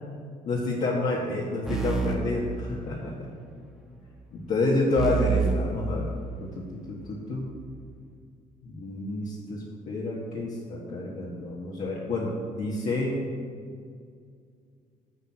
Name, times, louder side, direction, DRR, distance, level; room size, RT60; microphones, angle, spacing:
voice 1, 0.4-3.1 4.3-6.1 6.4-7.4 8.6-13.1, left 2 dB, 55° left, -5 dB, 1.7 m, -29 dB
sound 1, 1.7-3.3 5.0-6.7, right 5 dB, 5° right, 1.2 m, -29 dB
8.5 x 8.2 x 6.0 m, 2.2 s
cardioid pair, 125°, 15 cm